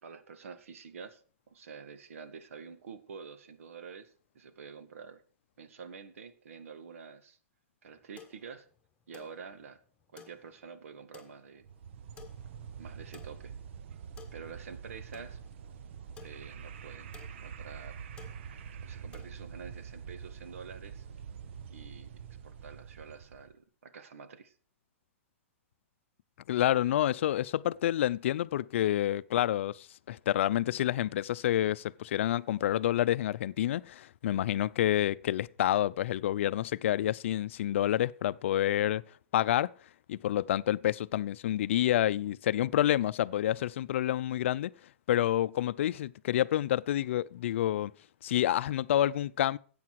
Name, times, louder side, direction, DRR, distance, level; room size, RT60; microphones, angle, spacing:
voice 1, 0.0-1.2 1.5-5.2 5.6-7.4 7.8-8.7 9.1-9.8 10.1-11.7 12.8-13.5 14.3-15.4 16.2-17.1 17.4-18.0 18.8-21.1 21.7-24.6, right 6 dB, 75° right, 1.9 m, -48 dB
sound 1, 7.9-19.4, left 8 dB, 15° left, 1.7 m, -58 dB
sound 2, 11.6-23.5, right 7 dB, 60° right, 0.9 m, -46 dB
voice 2, 26.5-39.0 39.3-39.7 40.1-44.7 45.1-47.9 48.2-49.6, left 12 dB, 65° left, 0.5 m, -28 dB
13.5 x 8.7 x 4.7 m
hypercardioid pair, 145°, 7 cm